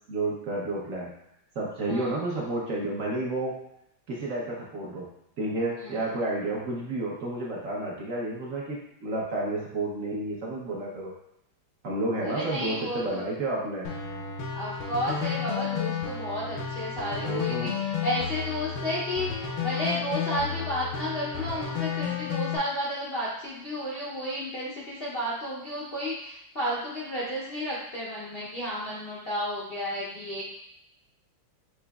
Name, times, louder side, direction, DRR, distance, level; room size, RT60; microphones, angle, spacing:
voice 1, 0.1-1.1 1.6-3.6 4.1-5.1 5.4-11.1 11.8-13.9 17.1-17.7, right 2 dB, 60° right, -4 dB, 0.9 m, -31 dB
voice 2, 12.2-13.3 14.5-30.4, equal, 65° left, -7 dB, 0.5 m, -32 dB
sound 1, 13.8-22.6, left 7 dB, 80° left, 1.5 m, -32 dB
6.1 x 2.9 x 2.3 m, 0.79 s
omnidirectional pair, 2.1 m